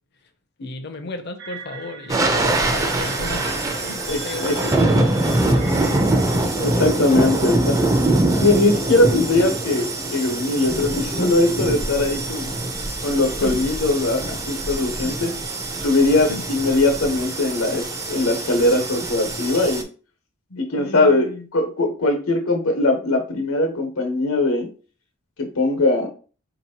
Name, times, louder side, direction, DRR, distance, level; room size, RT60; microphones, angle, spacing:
voice 1, 0.6-3.5 3.8-6.1 13.4-13.5 16.3-16.5 20.5-21.5, left 2 dB, 55° left, 6 dB, 0.6 m, -34 dB
sound 1, 1.4-6.5, right 4 dB, 55° right, 0.6 m, -38 dB
sound 2, 2.1-19.8, right 2 dB, 15° right, 0.4 m, -23 dB
voice 2, 4.1-4.5 6.6-7.8 8.3-12.5 13.0-15.3 15.8-19.8 20.6-24.7 25.4-26.1, left 2 dB, 90° left, 3 dB, 1.1 m, -20 dB
4.1 x 2.9 x 2.8 m, 0.38 s
head